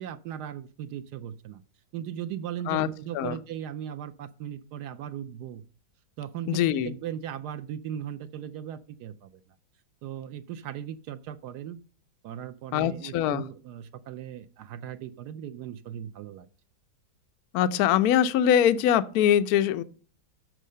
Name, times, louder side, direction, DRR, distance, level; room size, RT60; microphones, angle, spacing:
voice 1, 0.0-1.6 1.9-5.6 6.2-9.4 10.0-11.8 12.2-16.5, right 10 dB, 75° right, 0.9 m, -38 dB
voice 2, 6.5-6.9 12.7-13.4 17.5-19.8, left 10 dB, 80° left, 0.8 m, -23 dB
7.4 x 6.2 x 6.5 m
omnidirectional pair, 2.2 m